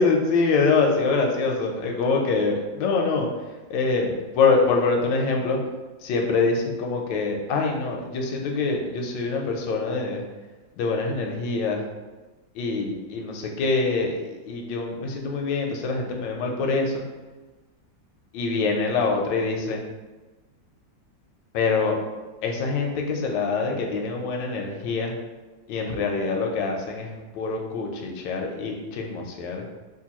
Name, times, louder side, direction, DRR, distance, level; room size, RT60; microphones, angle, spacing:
voice 1, 0.0-3.3 3.7-5.6 6.0-10.2 10.8-11.8 12.5-17.0 18.3-19.8 21.5-22.0 22.4-25.2 25.7-29.6, left 4 dB, 75° left, 2 dB, 1.2 m, -25 dB
3.7 x 2.5 x 2.9 m, 1.2 s
omnidirectional pair, 2.1 m